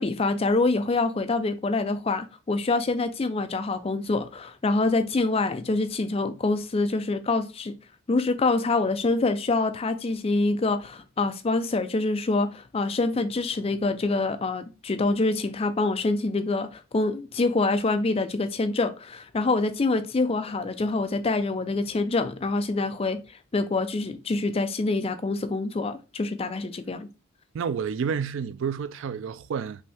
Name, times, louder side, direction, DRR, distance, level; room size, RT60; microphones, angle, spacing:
voice 1, 0.0-7.8 8.1-27.1, left 3 dB, 25° left, 0.3 m, -26 dB
voice 2, 27.5-29.9, right 6 dB, 60° right, 0.3 m, -30 dB
5.4 x 2.7 x 3.4 m
head